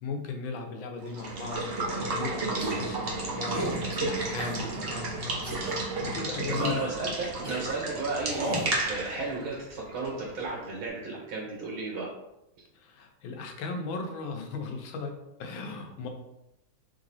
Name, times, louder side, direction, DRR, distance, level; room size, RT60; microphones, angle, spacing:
voice 1, 0.0-5.1 5.9-6.8 12.7-16.1, left 4 dB, 75° left, 4 dB, 1.4 m, -37 dB
Water / Water tap faucet / Liquid, 1.0-10.7, right 2 dB, 55° right, 0.6 m, -33 dB
voice 2, 2.5-2.8 6.5-12.1, right 3 dB, 80° right, -3 dB, 1.7 m, -34 dB
sound 1, 2.6-2.9 3.4-3.8 4.4-4.9 5.4-5.7 6.5-6.9 7.4-7.6 8.3-8.7, right 1 dB, 25° right, 1.1 m, -34 dB
3.8 x 3.3 x 4.0 m, 0.88 s
omnidirectional pair, 2.2 m